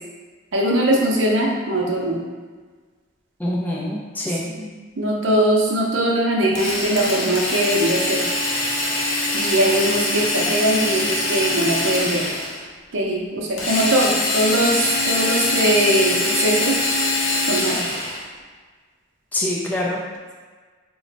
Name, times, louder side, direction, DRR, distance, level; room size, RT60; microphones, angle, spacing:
voice 1, 0.5-2.2 4.4-4.7 5.0-8.2 9.3-12.3 12.9-16.8 17.4-17.8, right 1 dB, 65° right, -3 dB, 0.6 m, -21 dB
voice 2, 3.4-4.4 19.3-20.0, left 1 dB, 10° left, -5 dB, 0.4 m, -25 dB
Drill, 6.5-12.6 13.6-18.2, left 2 dB, 85° left, 0.7 m, -23 dB
3.0 x 2.2 x 3.9 m, 1.4 s
head